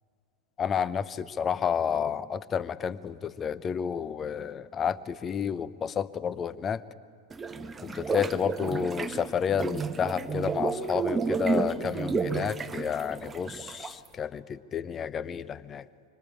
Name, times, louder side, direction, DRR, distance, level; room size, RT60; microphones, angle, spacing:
voice 1, 0.6-6.8 7.8-15.9, left 7 dB, 25° left, 18 dB, 0.8 m, -30 dB
sound 1, 7.3-14.1, right 4 dB, 15° right, 1.1 m, -31 dB
25.0 x 24.5 x 8.8 m, 2.2 s
figure-of-eight pair, 90°, 0 cm